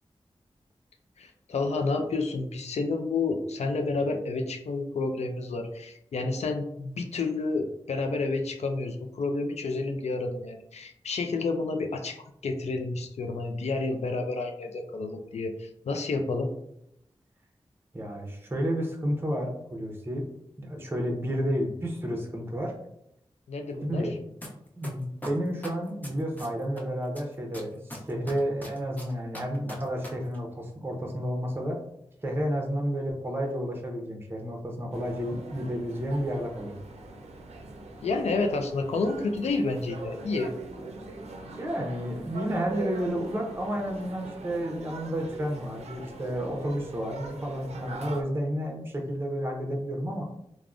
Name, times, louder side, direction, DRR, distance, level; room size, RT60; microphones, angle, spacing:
voice 1, 1.2-12.2 12.4-16.5 23.5-24.1 38.0-40.5, left 3 dB, 85° left, 5 dB, 0.4 m, -30 dB
voice 2, 17.9-20.2 20.6-22.7 23.8-24.1 24.8-31.8 32.2-36.8 41.6-50.2, equal, 20° right, 1 dB, 0.6 m, -31 dB
sound 1, 24.4-24.5 24.8-26.8 27.1-30.1 30.3-30.4, left 1 dB, 15° left, 0.7 m, -40 dB
sound 2, 34.9-48.2, right 3 dB, 85° right, 0.4 m, -42 dB
3.5 x 2.0 x 2.4 m, 0.78 s
cardioid pair, 50°, 11 cm